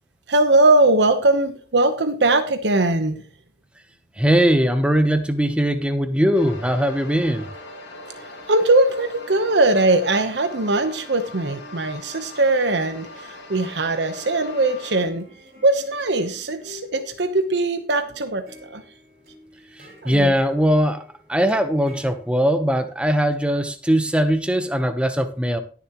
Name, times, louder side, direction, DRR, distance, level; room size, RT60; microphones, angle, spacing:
voice 1, 0.3-3.2 8.5-15.3 15.6-18.8 20.0-20.3, right 2 dB, 85° right, 8 dB, 1.0 m, -20 dB
voice 2, 4.2-7.5 19.8-21.0 21.3-25.6, equal, 5° right, 8 dB, 0.9 m, -20 dB
sound 1, 6.4-15.0, left 2 dB, 80° left, 2.4 m, -40 dB
sound 2, 14.4-22.3, left 2 dB, 50° right, 5.7 m, -48 dB
17.5 x 7.1 x 3.0 m, 0.40 s
head